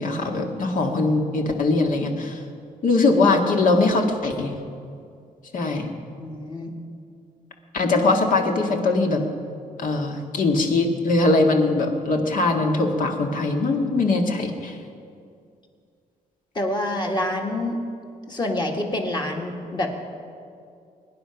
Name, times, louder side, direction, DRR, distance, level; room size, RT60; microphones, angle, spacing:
voice 1, 0.0-2.4 2.8-4.6 5.5-5.9 7.7-9.2 9.8-14.8, left 3 dB, 60° left, 3 dB, 1.9 m, -21 dB
voice 2, 6.2-6.7 16.5-17.8 18.3-19.9, left 1 dB, 30° left, 1 dB, 2.0 m, -27 dB
23.0 x 10.5 x 5.9 m, 2.4 s
wide cardioid pair, 140°, 15 cm